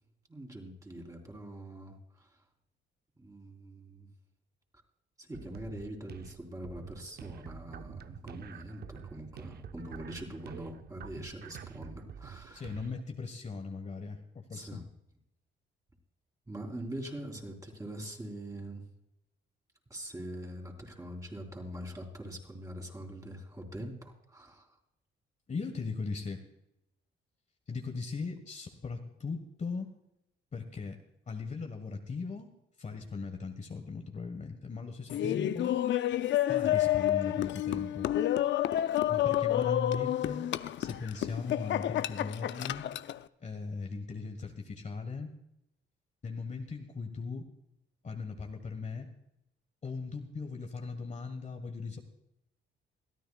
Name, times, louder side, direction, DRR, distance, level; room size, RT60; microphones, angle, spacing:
voice 1, 0.3-2.3 3.2-4.1 5.2-12.8 14.5-14.8 16.5-18.8 19.9-24.7, right 1 dB, 15° right, 2 dB, 3.7 m, -43 dB
sound 1, 5.3-13.0, right 8 dB, 55° right, 0.6 m, -47 dB
voice 2, 12.5-14.8 25.5-26.4 27.7-29.9 30.5-31.0 31.3-32.5 32.8-35.8 36.5-38.1 39.1-40.5 40.8-42.9 43.4-45.3 46.2-47.5 48.0-49.1 49.8-52.0, left 4 dB, 35° left, 5 dB, 1.4 m, -38 dB
Laughter, 35.1-43.2, left 12 dB, 70° left, 0.5 m, -29 dB
22.0 x 14.0 x 2.4 m, 0.82 s
cardioid pair, 90°, 20 cm